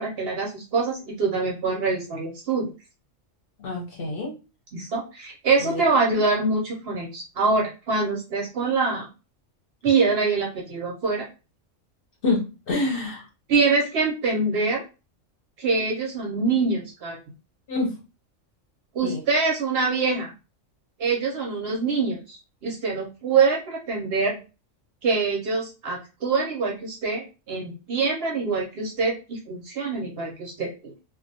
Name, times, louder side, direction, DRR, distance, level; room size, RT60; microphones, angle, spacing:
voice 1, 0.0-2.7 4.7-9.1 9.8-11.3 13.5-14.8 15.6-17.2 18.9-20.3 21.0-24.4 25.0-30.9, right 4 dB, 60° right, 0 dB, 0.7 m, -24 dB
voice 2, 3.6-4.3 5.6-5.8 6.1-6.2 12.2-13.2 17.7-17.9 19.0-19.2, left 3 dB, 50° left, -2 dB, 0.9 m, -27 dB
2.4 x 2.1 x 2.6 m, 0.31 s
omnidirectional pair, 1.3 m